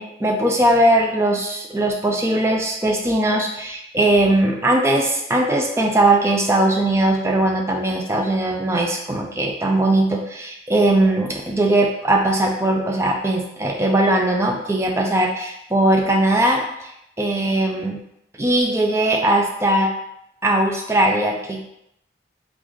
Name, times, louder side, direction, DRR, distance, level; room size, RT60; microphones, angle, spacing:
voice 1, 0.0-16.6 17.2-18.0 18.4-19.9 20.4-21.6, right 1 dB, 15° right, 0 dB, 0.4 m, -19 dB
3.7 x 2.5 x 3.1 m, 0.79 s
head